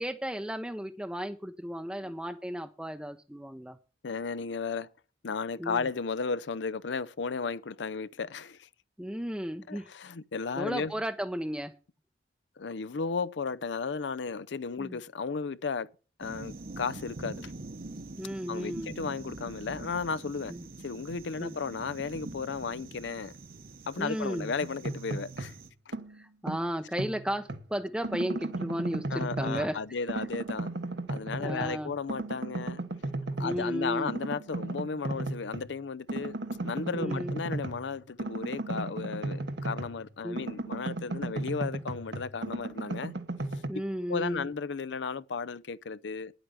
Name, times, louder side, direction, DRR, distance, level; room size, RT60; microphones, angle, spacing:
voice 1, 0.0-3.8 5.6-5.8 9.0-9.9 10.6-11.7 14.8-15.0 18.2-19.0 20.5-20.7 21.4-21.6 24.0-24.5 26.1-29.8 31.4-31.9 33.4-34.1 37.0-37.3 40.2-40.4 43.7-44.5, equal, 5° right, 0.5 m, -34 dB
voice 2, 4.0-4.9 5.2-8.7 9.7-10.9 12.6-15.9 16.2-17.5 18.5-20.5 20.8-23.3 23.9-25.5 25.9-26.0 29.1-30.7 31.1-32.8 33.4-36.3 36.6-43.1 43.5-43.8 44.1-46.3, left 5 dB, 75° left, 0.6 m, -34 dB
sound 1, 16.2-25.7, right 2 dB, 50° right, 1.0 m, -44 dB
sound 2, 24.6-25.6 25.9-27.7 28.0-29.8 30.1-31.8 32.1-33.7 34.1-35.7 36.1-40.1 40.4-43.7, right 2 dB, 70° right, 1.1 m, -35 dB
10.0 x 8.0 x 6.7 m
head